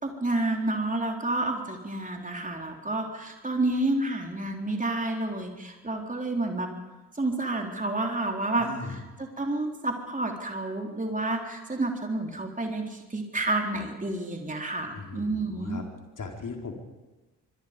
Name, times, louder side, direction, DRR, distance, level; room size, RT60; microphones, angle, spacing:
voice 1, 0.0-6.7 7.1-15.8, right 2 dB, 15° right, 2 dB, 3.8 m, -30 dB
voice 2, 8.6-8.9 14.9-15.8 16.2-16.7, left 4 dB, 40° left, 2 dB, 4.7 m, -38 dB
25.0 x 23.0 x 5.3 m, 1.1 s
figure-of-eight pair, 40°, 46 cm